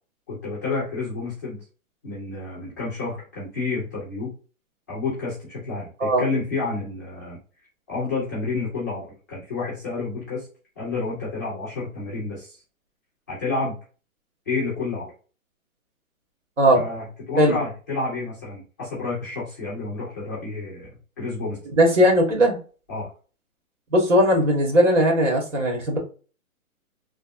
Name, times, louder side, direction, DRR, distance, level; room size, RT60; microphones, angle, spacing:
voice 1, 0.3-1.6 2.0-4.3 4.9-7.4 7.9-10.5 10.8-12.6 13.3-13.8 14.5-15.1 16.7-21.6 22.9-23.1, left 3 dB, 15° left, 0.7 m, -30 dB
voice 2, 21.8-22.6 23.9-26.0, equal, 60° right, 1.5 m, -18 dB
3.3 x 2.3 x 2.5 m
hypercardioid pair, 170°, 42 cm